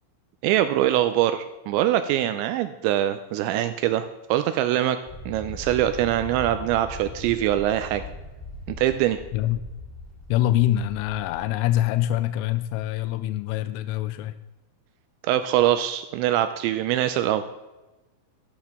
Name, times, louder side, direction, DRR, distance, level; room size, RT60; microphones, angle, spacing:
voice 1, 0.4-5.0 5.3-8.0 8.7-9.2 15.3-17.4, right 12 dB, 85° right, 10 dB, 2.6 m, -23 dB
sound 1, 5.0-11.5, left 1 dB, ahead, 1.3 m, -40 dB
voice 2, 9.3-9.6 10.3-14.3, left 13 dB, 90° left, 12 dB, 3.1 m, -24 dB
13.0 x 12.0 x 3.6 m, 1.1 s
omnidirectional pair, 5.7 m